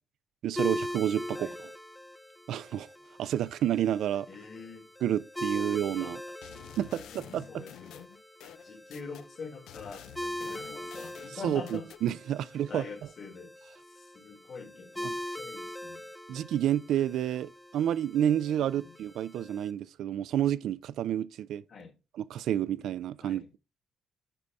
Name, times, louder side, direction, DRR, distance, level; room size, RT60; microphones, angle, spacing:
voice 1, 0.4-1.7 2.5-2.9 3.2-4.3 5.0-6.2 6.8-7.6 11.4-12.8 15.0-15.2 16.3-21.6 22.3-23.4, right 10 dB, 70° right, 0.4 m, -30 dB
sound 1, 0.6-19.7, left 1 dB, 5° left, 0.5 m, -41 dB
voice 2, 4.3-4.9 5.5-5.6 6.0-6.1 6.9-8.1 8.6-11.9 12.7-13.5 13.9-16.1 18.6-18.9 21.7-21.9 23.2-23.5, left 5 dB, 40° left, 1.5 m, -45 dB
sound 2, 6.4-9.3 9.7-12.0, left 11 dB, 85° left, 0.5 m, -49 dB
9.8 x 4.1 x 3.4 m
cardioid pair, 150°, 0 cm